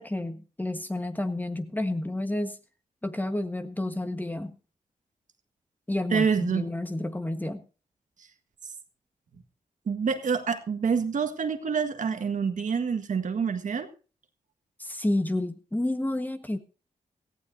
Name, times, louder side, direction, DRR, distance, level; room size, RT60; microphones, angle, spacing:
voice 1, 0.0-2.6 3.0-4.5 5.9-7.6 14.8-16.6, left 1 dB, 10° left, 8 dB, 1.4 m, -30 dB
voice 2, 6.1-6.7 9.9-13.9, right 6 dB, 65° right, 8 dB, 1.6 m, -27 dB
17.5 x 15.0 x 2.7 m, 0.35 s
cardioid pair, 75°, 14 cm